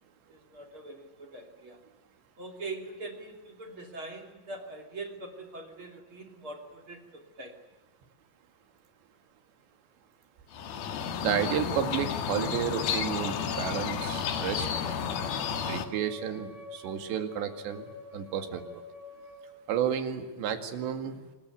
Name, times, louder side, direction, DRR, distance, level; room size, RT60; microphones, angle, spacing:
voice 1, 0.3-1.8 2.4-7.6, right 2 dB, 30° right, 4 dB, 3.0 m, -43 dB
sound 1, 10.5-15.9, left 7 dB, 60° left, 3.2 m, -32 dB
voice 2, 11.2-14.7 15.6-17.8 18.1-18.8 19.7-21.2, right 8 dB, 70° right, 8 dB, 4.2 m, -31 dB
Wind instrument woodwind instrument, 12.9-19.5, left 2 dB, 45° left, 6.5 m, -46 dB
26.5 x 21.5 x 9.4 m, 1.2 s
omnidirectional pair, 5.5 m